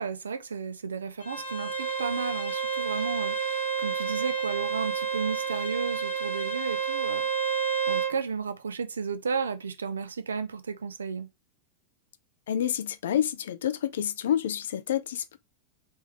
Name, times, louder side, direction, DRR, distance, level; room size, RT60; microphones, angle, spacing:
voice 1, 0.0-7.6 7.9-11.3, right 5 dB, 70° right, 0.6 m, -33 dB
Bowed string instrument, 1.2-8.2, right 6 dB, 80° left, 1.7 m, -30 dB
voice 2, 12.5-15.4, left 10 dB, 60° left, 0.5 m, -28 dB
4.3 x 3.4 x 3.4 m
figure-of-eight pair, 90°, 0 cm